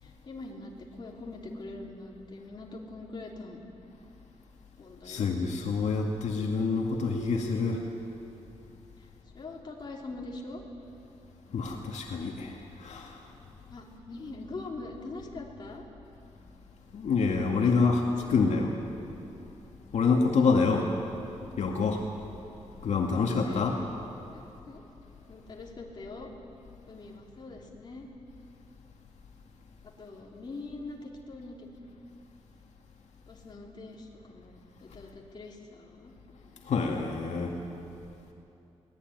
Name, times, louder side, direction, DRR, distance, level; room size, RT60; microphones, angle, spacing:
voice 1, 0.0-3.6 4.8-5.3 9.0-9.1 9.3-10.6 13.7-15.8 17.6-17.7 18.2-18.3 23.2-23.6 24.3-24.8 25.3-26.3 26.9-28.1 30.0-32.0 33.3-36.1, left 2 dB, 40° left, -1 dB, 3.4 m, -43 dB
voice 2, 5.0-7.9 11.5-13.3 16.9-18.8 19.9-20.9 21.6-22.0 22.8-23.8 36.6-37.6, left 4 dB, 80° left, 1 dB, 2.1 m, -27 dB
23.0 x 19.0 x 9.5 m, 2.8 s
wide cardioid pair, 150°, 12 cm